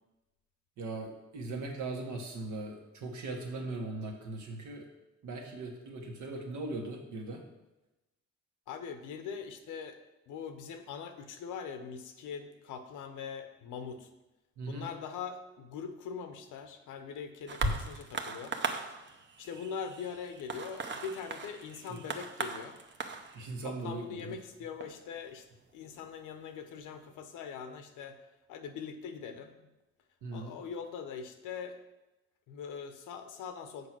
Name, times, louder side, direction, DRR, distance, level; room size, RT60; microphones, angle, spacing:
voice 1, 0.8-4.8 5.2-7.4 14.6-14.9 23.3-24.4 30.2-30.5, right 2 dB, 75° right, 1 dB, 1.7 m, -39 dB
voice 2, 8.7-10.0 10.3-14.1 14.7-18.5 19.4-22.8 23.6-25.5 25.7-28.2 28.5-29.5 30.3-31.8 32.5-33.9, left 6 dB, 90° left, 8 dB, 0.9 m, -42 dB
sound 1, 17.5-26.3 27.1-27.2, right 4 dB, 40° right, 0.8 m, -40 dB
6.8 x 4.9 x 6.0 m, 1.0 s
cardioid pair, 90°, 30 cm